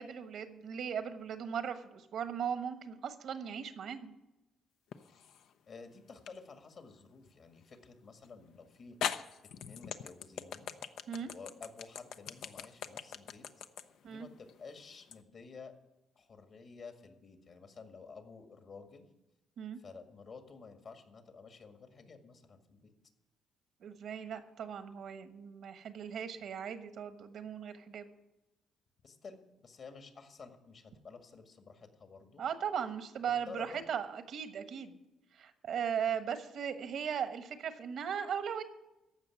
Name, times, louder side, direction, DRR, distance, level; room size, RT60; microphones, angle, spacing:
voice 1, 0.0-4.1 11.1-11.3 14.0-14.3 19.6-19.8 23.8-28.1 32.4-35.0 35.3-38.6, right 8 dB, 70° right, 10 dB, 1.2 m, -38 dB
sound 1, 4.9-5.5 6.3-6.4 8.2-8.3 9.0-15.2, left 8 dB, 80° left, 0.7 m, -41 dB
voice 2, 5.7-9.0 9.6-10.7 11.2-13.5 14.1-15.7 16.2-19.1 19.8-22.9 29.0-32.4 33.3-33.8, left 4 dB, 55° left, 6 dB, 1.9 m, -52 dB
14.5 x 5.7 x 9.3 m, 0.98 s
cardioid pair, 90°, 0 cm